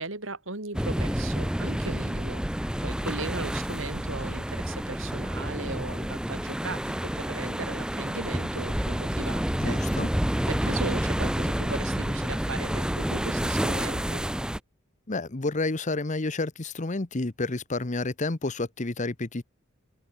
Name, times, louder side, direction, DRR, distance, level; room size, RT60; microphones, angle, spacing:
voice 1, 0.0-2.4 2.8-9.8 10.5-14.2, right 3 dB, 65° right, 3.5 m, -37 dB
sound 1, 0.7-14.6, equal, 5° right, 0.5 m, -29 dB
voice 2, 9.6-10.1 15.1-19.4, left 2 dB, 35° left, 1.0 m, -30 dB
head